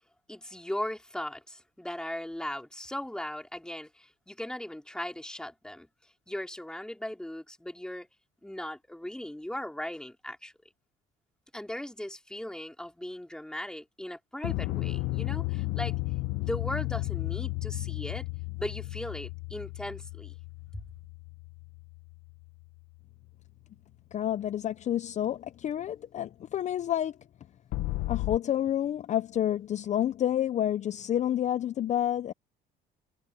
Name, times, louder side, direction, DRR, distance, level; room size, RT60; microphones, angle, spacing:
voice 1, 0.3-5.9 6.3-8.1 8.4-10.5 11.5-16.0 16.4-18.2 18.6-20.4 20.7-20.8, left 1 dB, 5° left, 4.0 m, -38 dB
sound 1, 14.4-22.8 27.7-28.4, left 21 dB, 85° left, 0.8 m, -34 dB
voice 2, 24.1-27.2 28.1-32.3, left 11 dB, 45° left, 0.5 m, -29 dB
cardioid pair, 110°, 17 cm